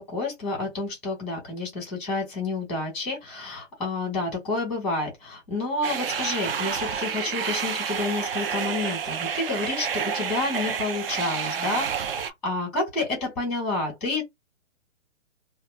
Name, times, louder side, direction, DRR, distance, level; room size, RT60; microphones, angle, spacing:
voice 1, 0.0-14.2, left 3 dB, ahead, 1.3 m, -29 dB
sound 1, 5.8-12.3, right 7 dB, 50° right, 0.4 m, -29 dB
2.6 x 2.1 x 2.2 m
hypercardioid pair, 150°, 38 cm